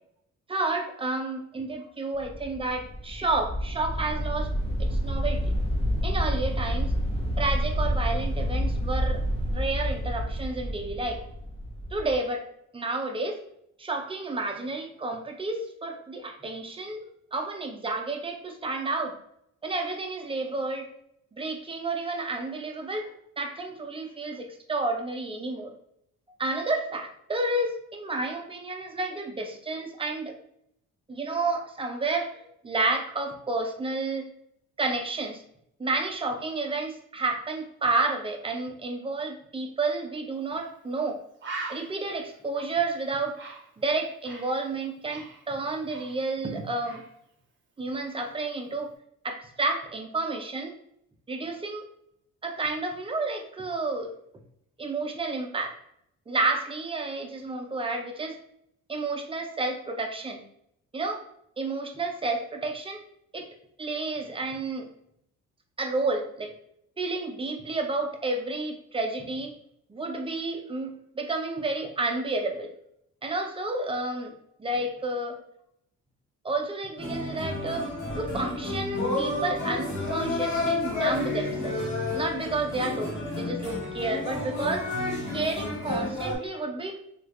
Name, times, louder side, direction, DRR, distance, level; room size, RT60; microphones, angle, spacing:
voice 1, 0.5-4.5 4.8-5.5 6.0-6.9 7.4-9.2 9.5-11.2 11.9-12.4 12.7-13.4 13.8-17.0 17.3-19.2 19.6-20.9 21.4-25.7 26.4-30.4 31.1-32.3 32.6-34.3 34.8-35.4 35.8-41.2 41.7-43.4 43.8-47.0 47.8-48.9 49.2-50.8 51.3-51.8 52.4-54.1 54.8-55.7 56.3-58.4 58.9-60.4 60.9-61.2 61.6-63.0 63.3-63.5 63.8-64.9 65.8-66.5 67.0-69.5 69.9-72.7 73.2-74.3 74.6-75.4 76.4-81.9 82.1-84.9 85.3-87.0, right 3 dB, 20° right, 3 dB, 0.5 m, -30 dB
sound 1, 2.1-12.1, equal, 20° left, 0.7 m, -29 dB
Bird, 40.5-40.7 41.0-41.1 41.4-44.6 44.9-46.5 46.8-47.1, right 3 dB, 40° right, 0.9 m, -41 dB
sound 2, 77.0-86.4, left 2 dB, 70° left, 1.1 m, -30 dB
3.2 x 2.4 x 3.1 m, 0.73 s
cardioid pair, 90°, 30 cm